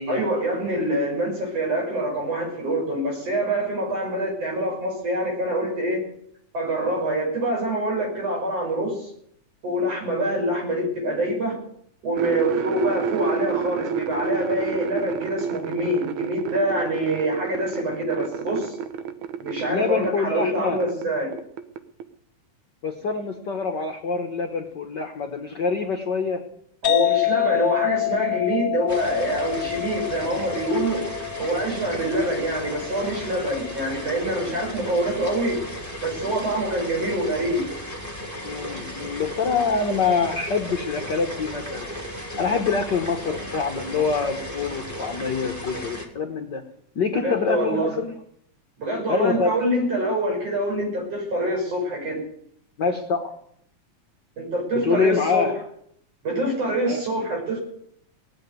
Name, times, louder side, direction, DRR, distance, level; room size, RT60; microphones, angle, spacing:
voice 1, 0.1-6.0 6.5-9.1 9.6-11.6 12.0-18.8 19.4-21.4 26.8-31.1 31.4-35.6 36.0-37.6 47.1-47.9 48.8-52.2 54.4-55.5 56.2-57.6, right 1 dB, 50° right, -1 dB, 7.1 m, -25 dB
sound 1, 12.2-21.1 21.3-22.0, right 6 dB, 75° right, 2.3 m, -29 dB
voice 2, 19.7-20.8 22.8-26.4 38.4-41.9 42.4-46.6 46.9-48.1 49.1-49.6 52.8-53.3 54.7-55.5 56.8-57.0, left 5 dB, 55° left, 4 dB, 1.2 m, -25 dB
sound 2, 26.8-34.3, left 17 dB, 75° left, 0.8 m, -27 dB
sound 3, 28.9-46.1, equal, 5° right, 2.0 m, -35 dB
19.0 x 7.7 x 9.4 m, 0.70 s
omnidirectional pair, 3.5 m